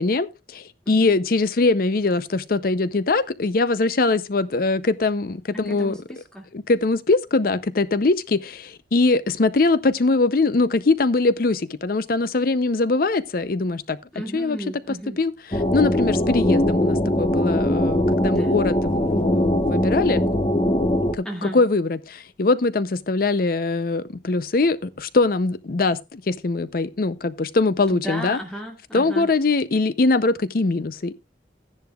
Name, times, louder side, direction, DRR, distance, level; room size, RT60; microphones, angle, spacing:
voice 1, 0.0-5.9 6.5-14.0 14.3-14.6 14.9-20.2 21.1-28.4 28.9-31.1, left 3 dB, 55° left, 0.6 m, -22 dB
voice 2, 5.5-6.5 14.1-15.2 18.2-18.6 21.2-21.6 27.9-29.3, right 1 dB, 5° left, 2.1 m, -34 dB
sound 1, 15.5-21.1, left 1 dB, 30° left, 1.0 m, -21 dB
14.0 x 10.5 x 2.3 m
head